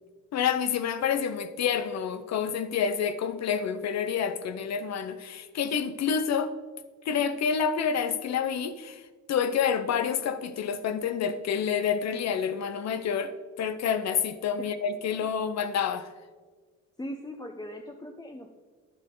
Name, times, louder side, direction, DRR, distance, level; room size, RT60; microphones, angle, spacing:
voice 1, 0.3-6.5 7.0-9.0 9.3-16.1, left 7 dB, 60° left, 11 dB, 0.7 m, -28 dB
voice 2, 17.0-18.6, equal, 15° left, 3 dB, 0.8 m, -39 dB
10.5 x 9.8 x 3.8 m, 1.5 s
cardioid pair, 90°, 30 cm